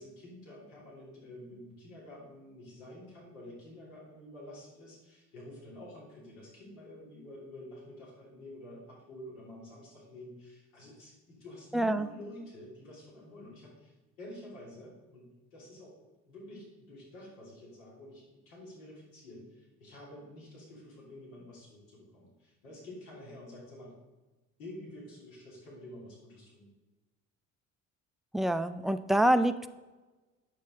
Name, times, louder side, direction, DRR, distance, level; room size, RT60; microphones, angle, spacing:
voice 1, 0.0-23.9 24.6-26.7, left 1 dB, 85° left, -5 dB, 3.2 m, -49 dB
voice 2, 11.7-12.1 28.3-29.7, right 1 dB, ahead, 10 dB, 0.4 m, -26 dB
9.5 x 7.4 x 3.8 m, 1.2 s
hypercardioid pair, 60°, 40 cm